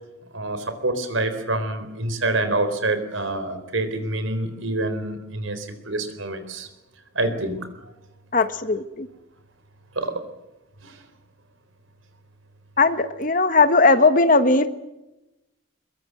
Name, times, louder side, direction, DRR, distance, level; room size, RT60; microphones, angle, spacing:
voice 1, 0.3-6.7 7.1-7.9 9.9-10.2 10.8-11.0, right 2 dB, 80° right, 10 dB, 4.2 m, -27 dB
voice 2, 8.3-9.1 12.8-14.7, left 3 dB, 40° left, 11 dB, 1.2 m, -18 dB
24.0 x 22.0 x 7.8 m, 0.99 s
head